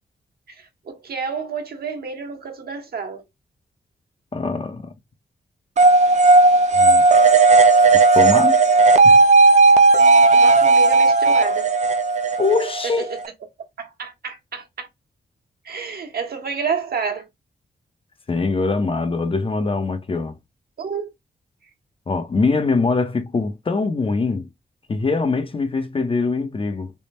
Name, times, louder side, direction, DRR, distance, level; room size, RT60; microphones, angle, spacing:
voice 1, 0.6-3.2 10.3-11.7 12.8-13.1 13.8-14.9 15.6-17.2 20.8-21.1, right 5 dB, 65° right, 1.2 m, -29 dB
voice 2, 4.3-4.9 6.8-7.0 8.1-8.6 9.0-9.2 12.4-13.1 18.3-20.3 22.1-24.5 24.9-26.9, left 4 dB, 30° left, 0.6 m, -22 dB
sound 1, 5.8-13.3, right 3 dB, 45° right, 0.5 m, -14 dB
3.5 x 2.2 x 4.1 m
wide cardioid pair, 110°, 17 cm